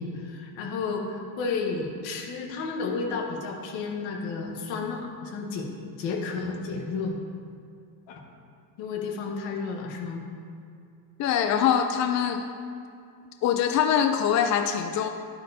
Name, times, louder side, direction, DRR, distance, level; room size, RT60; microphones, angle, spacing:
voice 1, 0.0-5.7 6.0-7.2 8.1-8.2 8.8-10.2, left 4 dB, 75° left, 1 dB, 1.4 m, -32 dB
voice 2, 11.2-12.5 13.4-15.1, left 8 dB, 40° left, 6 dB, 0.5 m, -23 dB
9.6 x 8.6 x 2.8 m, 2.4 s
supercardioid pair, 100°, 47 cm